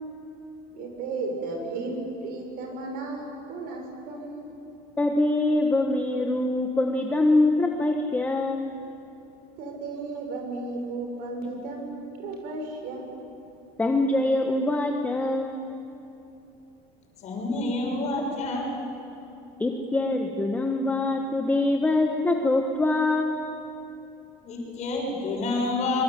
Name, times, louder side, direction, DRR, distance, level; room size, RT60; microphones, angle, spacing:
voice 1, 0.7-4.5 9.6-13.0, right 3 dB, 60° right, 3 dB, 6.7 m, -34 dB
voice 2, 5.0-8.7 13.8-15.5 19.6-23.3, left 2 dB, 10° left, 3 dB, 1.4 m, -24 dB
voice 3, 17.2-18.7 24.4-26.0, left 2 dB, 40° left, 0 dB, 6.6 m, -28 dB
25.0 x 23.5 x 9.1 m, 2.8 s
cardioid pair, 150°, 18 cm